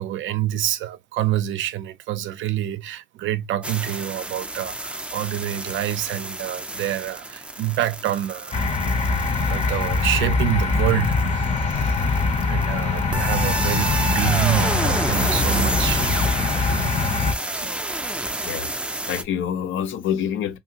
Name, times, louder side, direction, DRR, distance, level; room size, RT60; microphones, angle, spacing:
voice 1, 0.0-8.6 9.4-16.2 17.0-17.3 17.5-17.7, right 13 dB, 75° right, 0.4 m, -27 dB
sound 1, 3.6-19.2, right 2 dB, 5° right, 0.4 m, -29 dB
sound 2, 8.5-17.3, left 4 dB, 35° left, 0.7 m, -23 dB
voice 2, 17.6-18.7 19.1-20.6, left 9 dB, 75° left, 0.5 m, -28 dB
2.6 x 2.4 x 2.8 m
cardioid pair, 90°, 20 cm